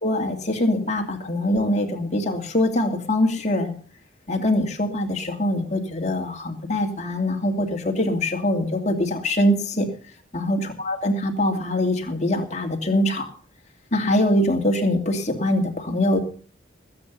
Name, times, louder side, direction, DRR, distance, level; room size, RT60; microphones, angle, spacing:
voice 1, 0.0-3.7 4.3-9.9 10.3-13.3 13.9-16.2, left 1 dB, 35° left, 2 dB, 2.7 m, -23 dB
20.5 x 8.9 x 5.5 m, 0.42 s
head